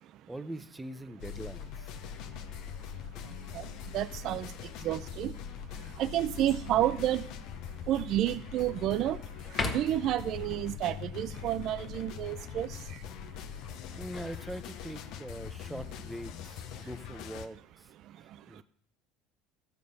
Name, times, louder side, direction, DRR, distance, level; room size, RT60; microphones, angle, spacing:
voice 1, 0.3-2.0 13.9-17.9 18.2-18.6, right 1 dB, 5° right, 11 dB, 0.7 m, -43 dB
sound 1, 1.2-17.5, left 8 dB, 60° left, 0.8 m, -42 dB
voice 2, 3.9-4.5 4.8-5.3 6.0-7.2 7.9-9.2 9.6-12.7, right 13 dB, 50° right, 13 dB, 0.5 m, -30 dB
sound 2, 6.5-6.9 7.5-7.6 8.1-8.9 9.4-10.2 13.7-15.1 16.4-17.0, left 3 dB, 30° left, 1.4 m, -39 dB
14.0 x 6.7 x 5.4 m, 0.64 s
supercardioid pair, 120°, 0 cm